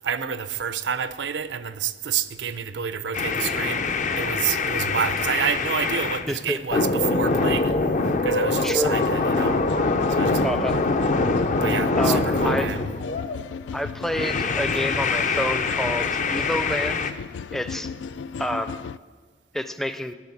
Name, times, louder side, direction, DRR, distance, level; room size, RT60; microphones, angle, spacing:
voice 1, 0.0-7.8 8.2-9.6 10.1-10.4 11.6-12.9, right 7 dB, 90° right, 0.6 m, -28 dB
sound 1, 3.1-6.3 6.7-13.4 14.1-17.1, left 3 dB, 45° left, 0.6 m, -24 dB
voice 2, 6.3-6.8 8.6-8.9 10.4-10.8 12.0-12.7 13.7-17.0 17.5-17.9 18.4-18.8 19.5-20.1, equal, ahead, 0.5 m, -28 dB
sound 2, 9.0-19.0, left 6 dB, 85° left, 0.3 m, -36 dB
12.0 x 6.6 x 9.7 m
head